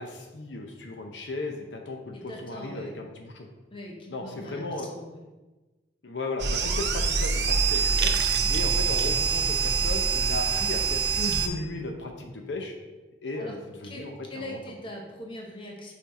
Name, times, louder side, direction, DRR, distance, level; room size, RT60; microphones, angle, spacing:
voice 1, 0.0-3.5 4.1-4.9 6.0-8.1 8.5-12.7 13.2-13.6 13.8-14.4, left 2 dB, 70° left, 3 dB, 0.7 m, -35 dB
voice 2, 2.1-2.9 3.7-5.2 8.4-8.6 13.4-13.6 13.8-15.9, left 1 dB, 30° left, 0 dB, 0.9 m, -41 dB
sound 1, 6.4-11.5, right 5 dB, 65° right, 0.6 m, -25 dB
5.7 x 4.6 x 4.2 m, 1.2 s
head